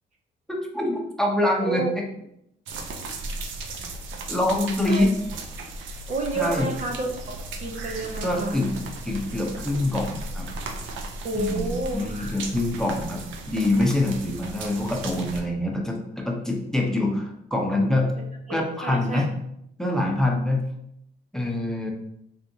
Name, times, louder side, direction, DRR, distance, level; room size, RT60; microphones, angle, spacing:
voice 1, 0.5-2.0 4.3-5.1 6.4-6.7 8.2-10.5 11.3-11.7 11.9-18.1 18.5-19.3 19.8-20.7 21.3-21.9, left 1 dB, 5° left, 0 dB, 0.8 m, -25 dB
voice 2, 1.3-1.9 4.9-5.1 6.1-8.6 11.2-12.3 16.8-16.9 18.5-18.6 18.8-19.2, right 2 dB, 40° right, 1 dB, 0.6 m, -30 dB
sound 1, 2.7-15.4, right 2 dB, 85° right, 0.6 m, -36 dB
4.1 x 3.4 x 2.7 m, 0.77 s
cardioid pair, 95°, 19 cm